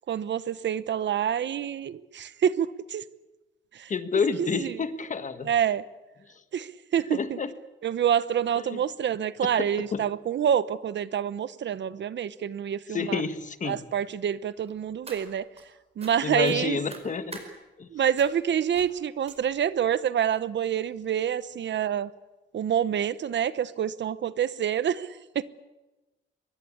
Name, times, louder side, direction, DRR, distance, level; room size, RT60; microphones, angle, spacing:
voice 1, 0.1-3.0 3.7-3.9 4.4-4.7 5.4-5.8 6.5-7.4 7.8-13.2 13.6-15.5 16.0-16.8 17.9-22.1 22.5-25.4, right 9 dB, 60° right, 16 dB, 0.9 m, -27 dB
voice 2, 3.9-5.5 6.3-6.4 7.1-7.5 8.5-8.8 9.6-10.0 12.9-13.8 16.2-17.4 17.8-17.9, left 5 dB, 35° left, 11 dB, 1.5 m, -29 dB
sound 1, 14.7-15.6 16.0-16.1 16.4-17.5 18.2-18.4 18.7-18.9 19.2-19.7 20.3-20.4 20.9-21.0 21.3-21.4, right 3 dB, 30° right, 4.9 m, -45 dB
23.5 x 21.5 x 8.5 m, 1.1 s
wide cardioid pair, 160°, 21 cm